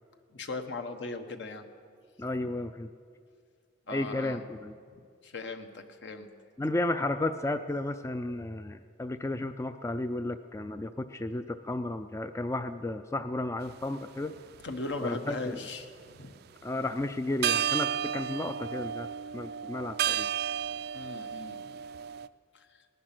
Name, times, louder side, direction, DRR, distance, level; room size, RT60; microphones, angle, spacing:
voice 1, 0.3-1.6 2.4-2.5 3.9-4.4 4.9-6.3 14.6-16.3 20.9-21.8 22.5-22.7, left 3 dB, 70° left, 6 dB, 1.1 m, -39 dB
voice 2, 2.2-2.9 3.9-4.8 6.6-14.4 15.0-15.6 16.6-19.1 19.3-20.3, left 2 dB, 15° left, 9 dB, 0.4 m, -33 dB
sound 1, 13.7-13.8 14.5-15.5 17.0-17.1 17.4-22.3, right 9 dB, 55° right, 0.4 m, -32 dB
19.0 x 11.0 x 6.1 m, 2.2 s
head